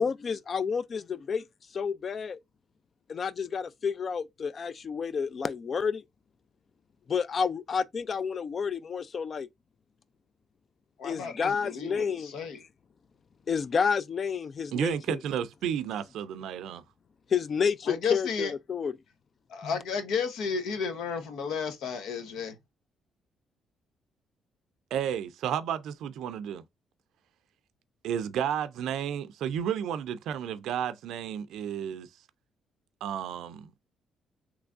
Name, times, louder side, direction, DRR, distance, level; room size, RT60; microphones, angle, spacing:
voice 1, 0.0-1.4 1.7-2.4 3.1-6.0 7.1-9.5 11.0-12.3 13.5-15.2 17.3-18.9 19.6-19.7, left 6 dB, 45° left, 0.4 m, -30 dB
voice 2, 11.0-12.6 17.9-18.5 19.5-22.6, left 6 dB, 85° left, 0.8 m, -32 dB
voice 3, 14.7-16.8 24.9-26.6 28.0-32.1 33.0-33.7, right 9 dB, 80° right, 0.4 m, -32 dB
3.4 x 3.1 x 2.4 m
cardioid pair, 90°, 0 cm